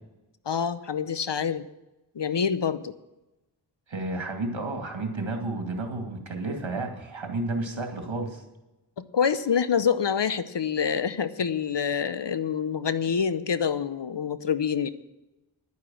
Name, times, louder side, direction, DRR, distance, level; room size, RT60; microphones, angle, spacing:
voice 1, 0.5-1.7 2.1-2.9 9.0-14.9, left 7 dB, 65° left, 14 dB, 0.8 m, -26 dB
voice 2, 3.9-8.4, right 2 dB, 80° right, 4 dB, 2.4 m, -31 dB
11.0 x 9.6 x 7.7 m, 0.99 s
wide cardioid pair, 55°, 46 cm